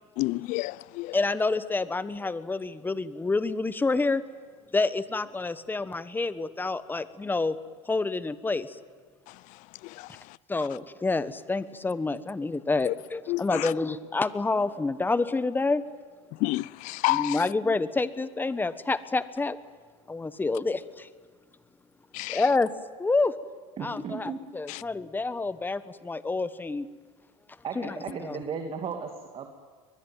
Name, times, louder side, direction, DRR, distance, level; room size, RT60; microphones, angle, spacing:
voice 1, 0.2-1.2 9.3-10.4 12.8-12.9 13.3-13.7 16.3-17.5 22.1-22.5 24.7-24.8, left 21 dB, 60° left, 0.6 m, -30 dB
voice 2, 1.1-4.2 4.7-7.6 7.9-8.8 10.5-15.8 17.1-19.6 20.1-21.1 22.3-22.7 23.0-23.3 23.8-26.9 27.7-28.4, left 3 dB, 15° left, 1.3 m, -28 dB
voice 3, 23.8-24.4 27.6-29.5, right 6 dB, 40° right, 2.6 m, -35 dB
23.0 x 21.5 x 9.3 m
supercardioid pair, 100°, 15 cm